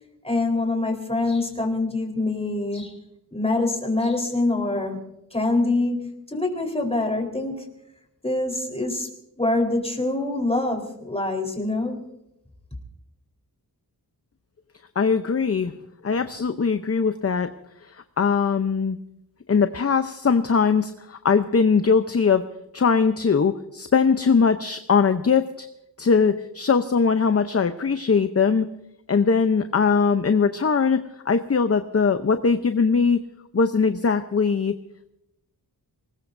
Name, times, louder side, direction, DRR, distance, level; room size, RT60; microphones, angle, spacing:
voice 1, 0.2-2.9 3.3-5.0 5.3-7.7 8.2-9.1 9.4-12.0, left 2 dB, 15° left, 3 dB, 4.0 m, -25 dB
voice 2, 15.0-15.7 16.0-17.5 17.8-19.0 19.5-22.4 22.7-25.7 26.0-28.7 29.1-33.2 33.5-34.7, left 5 dB, 35° left, 9 dB, 0.7 m, -21 dB
25.0 x 20.0 x 2.6 m, 0.84 s
wide cardioid pair, 85°, 40 cm